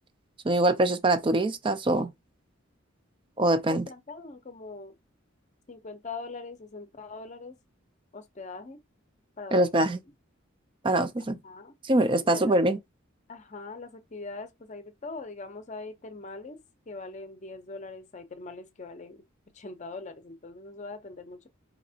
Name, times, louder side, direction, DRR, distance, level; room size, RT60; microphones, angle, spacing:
voice 1, 0.4-2.1 3.4-3.9 9.5-10.0 10.8-11.4 11.8-12.8, right 1 dB, 25° right, 0.4 m, -23 dB
voice 2, 3.7-4.9 5.7-7.6 8.1-8.8 9.4-9.8 11.4-11.7 12.2-12.6 13.3-16.6 16.9-19.2 19.5-21.5, left 3 dB, 35° left, 0.6 m, -42 dB
5.1 x 2.9 x 2.7 m
head